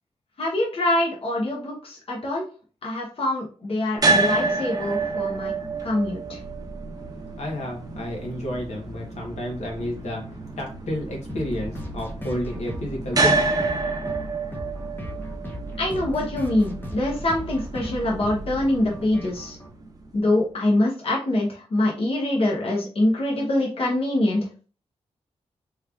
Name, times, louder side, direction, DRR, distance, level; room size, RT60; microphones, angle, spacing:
voice 1, 0.4-2.5 2.8-5.5 5.8-6.4 15.8-19.6 20.1-24.6, left 1 dB, 55° left, -2 dB, 0.9 m, -24 dB
sound 1, 4.0-20.1, right 3 dB, 35° right, 0.7 m, -29 dB
voice 2, 7.4-10.2 10.6-13.5, left 1 dB, 80° left, 0 dB, 1.1 m, -31 dB
sound 2, 11.3-19.7, equal, 15° left, 0.7 m, -37 dB
3.5 x 3.2 x 2.4 m, 0.38 s
wide cardioid pair, 105°, 12 cm